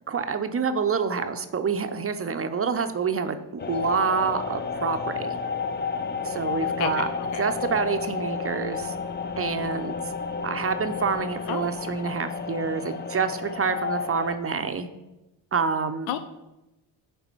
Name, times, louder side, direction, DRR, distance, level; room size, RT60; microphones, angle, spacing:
voice 1, 0.1-3.4 3.7-5.4 6.2-7.1 7.4-9.0 9.4-9.9 10.4-14.9 15.5-16.1, right 6 dB, 30° right, 8 dB, 0.6 m, -27 dB
sound 1, 3.6-14.4, left 5 dB, 25° left, 0.5 m, -31 dB
voice 2, 6.8-7.4 11.5-11.7 16.1-16.2, left 10 dB, 80° left, 11 dB, 0.6 m, -31 dB
9.7 x 3.4 x 4.5 m, 0.97 s
supercardioid pair, 65°, 48 cm